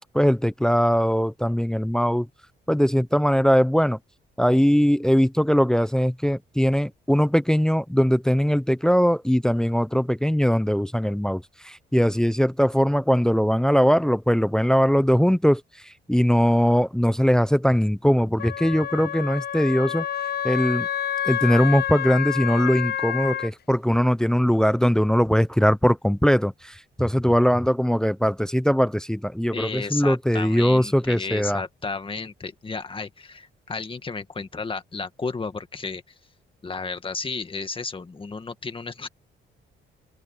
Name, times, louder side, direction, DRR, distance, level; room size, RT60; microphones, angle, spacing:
voice 1, 0.1-2.3 2.7-4.0 4.4-20.1 20.4-20.9 21.2-31.6, equal, 5° left, 0.8 m, -21 dB
Wind instrument woodwind instrument, 18.4-23.5, left 10 dB, 55° left, 0.8 m, -28 dB
voice 2, 29.5-36.0 36.6-39.1, left 4 dB, 25° left, 1.9 m, -33 dB
open air
cardioid pair, 90°, 20 cm